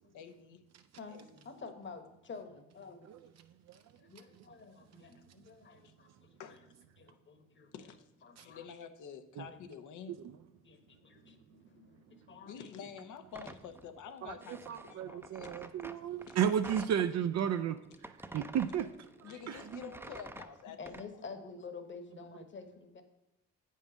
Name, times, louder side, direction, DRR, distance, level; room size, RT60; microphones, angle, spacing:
voice 1, 0.1-0.6 1.1-1.3 1.6-1.7 5.8-5.9 6.4-6.7 7.7-8.0 8.4-10.1 12.5-15.5 16.3-16.4 19.2-20.9, left 7 dB, 80° left, 0.9 m, -48 dB
voice 2, 1.4-3.1 3.8-6.6 7.0-7.7 8.2-8.6 10.6-12.7 20.8-23.0, left 4 dB, 40° left, 1.3 m, -49 dB
sound 1, 13.3-17.1 17.5-21.1, right 2 dB, 10° right, 0.6 m, -49 dB
voice 3, 14.7-17.8 18.0-18.9 19.2-19.8, right 9 dB, 60° right, 0.5 m, -33 dB
8.2 x 5.5 x 6.3 m
cardioid pair, 90°, 30 cm